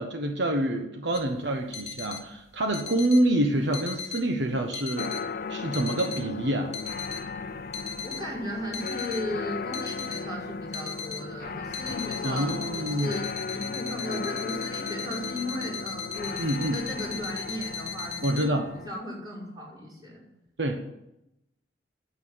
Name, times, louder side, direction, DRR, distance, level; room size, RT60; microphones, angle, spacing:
voice 1, 0.0-5.1 5.5-6.7 12.2-13.1 16.4-16.8 18.2-18.7 20.6-20.8, right 1 dB, 75° right, 4 dB, 1.2 m, -27 dB
sound 1, 1.1-18.5, left 6 dB, 40° left, 1.3 m, -38 dB
sound 2, 5.0-18.9, left 4 dB, 55° left, 0.5 m, -36 dB
voice 2, 8.0-20.2, left 1 dB, 25° right, -5 dB, 5.5 m, -36 dB
9.7 x 8.5 x 9.5 m, 0.87 s
head